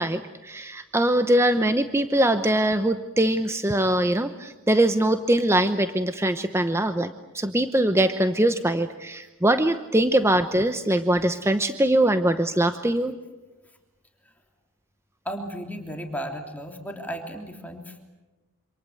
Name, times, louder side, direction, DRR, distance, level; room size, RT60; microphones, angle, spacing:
voice 1, 0.0-7.1 7.3-13.1, right 1 dB, 10° right, 9 dB, 0.9 m, -22 dB
voice 2, 15.2-18.0, equal, 5° left, 3 dB, 3.1 m, -34 dB
27.5 x 27.0 x 7.9 m, 1.1 s
head